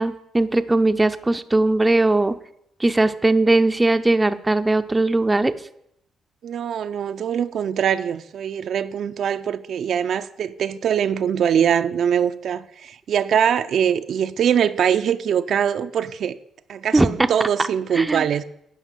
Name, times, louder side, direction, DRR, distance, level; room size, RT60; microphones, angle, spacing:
voice 1, 0.0-2.3 2.8-5.5 16.9-17.3 17.9-18.3, right 2 dB, 15° right, 0.6 m, -19 dB
voice 2, 6.4-16.3 16.7-18.4, right 8 dB, 65° right, 0.5 m, -22 dB
11.0 x 5.4 x 8.2 m
cardioid pair, 90°, 0 cm